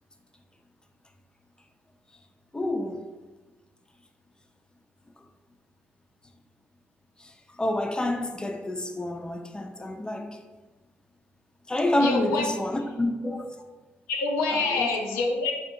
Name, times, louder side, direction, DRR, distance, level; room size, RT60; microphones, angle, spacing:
voice 1, 2.5-3.0 7.2-7.3 7.6-10.4 11.7-13.5 14.5-14.9, left 1 dB, 15° left, 0.4 m, -28 dB
voice 2, 12.0-12.5 14.1-15.5, left 3 dB, 85° left, 0.4 m, -26 dB
4.2 x 2.8 x 2.6 m
hypercardioid pair, 45°, 5 cm